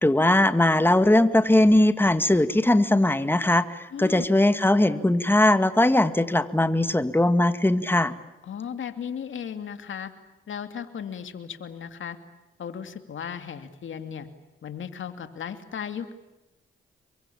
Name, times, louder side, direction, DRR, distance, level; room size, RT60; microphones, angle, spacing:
voice 1, 0.0-8.1, left 1 dB, 10° left, 11 dB, 2.0 m, -20 dB
voice 2, 3.9-4.3 8.4-10.1 10.5-12.2 12.6-14.3 14.6-16.1, left 7 dB, 70° left, 8 dB, 2.7 m, -35 dB
28.5 x 23.5 x 8.8 m, 0.97 s
cardioid pair, 60°, 21 cm